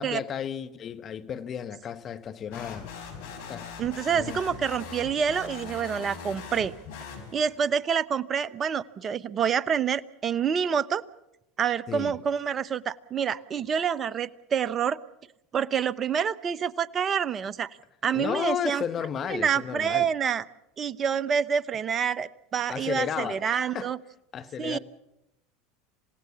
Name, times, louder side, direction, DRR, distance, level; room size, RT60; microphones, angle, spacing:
voice 1, 0.0-2.9 3.5-3.7 4.1-4.4 11.9-12.2 18.1-20.1 22.7-23.9 24.3-24.8, left 8 dB, 40° left, 1.3 m, -33 dB
sound 1, 2.5-7.7, left 5 dB, 70° left, 5.2 m, -41 dB
voice 2, 3.8-6.7 7.3-11.0 11.6-15.0 15.5-17.8 18.0-18.8 19.3-20.4 20.8-24.0 24.6-24.8, right 7 dB, 35° right, 1.0 m, -27 dB
28.0 x 17.0 x 7.2 m
hypercardioid pair, 90°, 0 cm